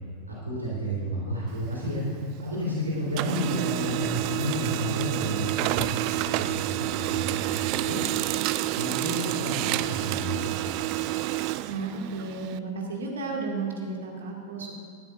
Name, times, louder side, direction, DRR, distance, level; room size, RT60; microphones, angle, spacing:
voice 1, 0.3-8.4 8.7-10.6, equal, 85° right, -6 dB, 3.4 m, -31 dB
Printer, 1.5-2.7 3.0-12.6, right 16 dB, 45° right, 0.3 m, -29 dB
voice 2, 11.4-14.7, right 3 dB, 65° right, 0 dB, 2.0 m, -33 dB
17.5 x 12.5 x 2.5 m, 2.4 s
figure-of-eight pair, 90°, 0 cm